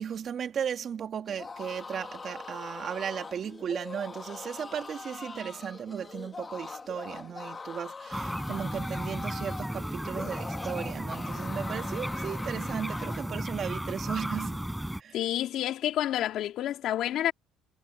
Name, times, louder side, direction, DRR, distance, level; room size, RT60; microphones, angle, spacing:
voice 1, 0.0-14.6 15.0-15.2, right 8 dB, 45° right, 2.7 m, -36 dB
sound 1, 1.3-13.4, left 4 dB, 25° left, 2.4 m, -42 dB
sound 2, 8.1-15.0, right 1 dB, 5° right, 4.9 m, -34 dB
voice 2, 15.1-17.3, left 12 dB, 65° left, 2.3 m, -29 dB
cardioid pair, 110°, 0 cm